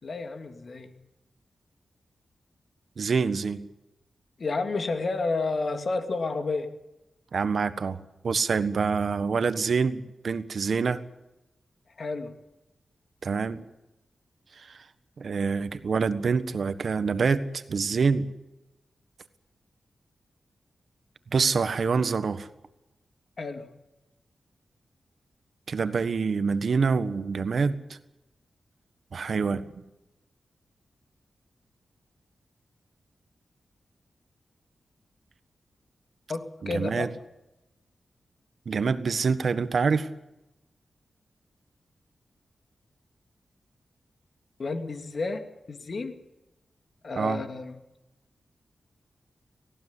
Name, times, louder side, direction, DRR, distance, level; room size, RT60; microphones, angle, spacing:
voice 1, 0.0-1.0 4.4-6.7 12.0-12.3 23.4-23.7 36.3-37.1 44.6-46.2 47.0-47.7, left 3 dB, 60° left, 7 dB, 2.6 m, -31 dB
voice 2, 3.0-3.7 7.3-8.0 8.2-11.0 13.2-13.6 14.6-14.8 15.2-18.3 21.3-22.5 25.7-27.8 29.1-29.8 36.7-37.1 38.6-40.1 47.1-47.4, right 5 dB, 65° right, 12 dB, 1.5 m, -26 dB
18.5 x 15.5 x 9.9 m, 0.95 s
cardioid pair, 65°, 0 cm